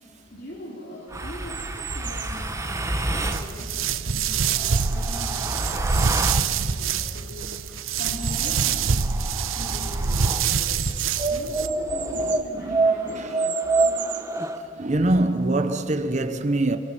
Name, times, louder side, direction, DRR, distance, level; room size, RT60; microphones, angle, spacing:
voice 1, 0.3-9.1 9.5-10.8 11.2-13.4, left 1 dB, 50° left, 2.9 m, -41 dB
sound 1, 1.1-3.5 4.4-6.5 8.1-10.5 11.2-14.6, right 2 dB, 15° right, 1.2 m, -27 dB
sound 2, 1.5-2.4 3.0-5.1 5.5-7.2 7.9-8.8 9.3-9.4 9.6-9.7 10.4-12.5 13.1-14.4, right 12 dB, 55° right, 1.5 m, -37 dB
sound 3, 3.3-11.7, right 6 dB, 85° right, 0.9 m, -25 dB
voice 2, 12.1-13.4 13.8-14.1 14.7-16.8, right 2 dB, 35° right, 0.8 m, -25 dB
28.0 x 23.0 x 6.0 m
head